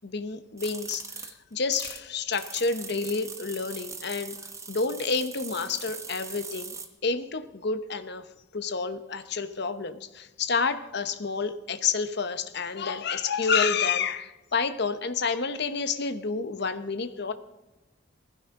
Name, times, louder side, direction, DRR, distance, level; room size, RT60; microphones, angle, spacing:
voice 1, 0.0-4.3 4.7-6.8 7.0-8.2 8.5-17.3, left 5 dB, 55° left, 10 dB, 1.0 m, -29 dB
sound 1, 0.6-2.0 2.3-6.9, right 4 dB, 15° right, 1.2 m, -41 dB
19.5 x 15.5 x 3.8 m, 1.0 s
head